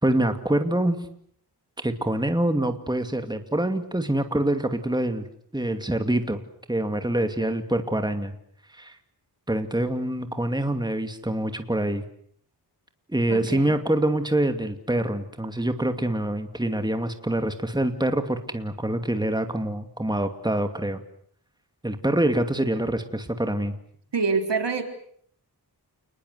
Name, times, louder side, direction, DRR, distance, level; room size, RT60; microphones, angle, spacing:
voice 1, 0.0-1.0 1.8-5.2 5.5-6.4 6.7-8.3 8.7-9.0 9.5-12.0 13.1-21.0 21.8-23.8, right 1 dB, 10° right, 7 dB, 2.6 m, -25 dB
voice 2, 13.3-13.8 24.1-24.8, right 4 dB, 85° right, 5 dB, 3.9 m, -26 dB
29.0 x 21.0 x 8.1 m, 0.64 s
wide cardioid pair, 80°, 41 cm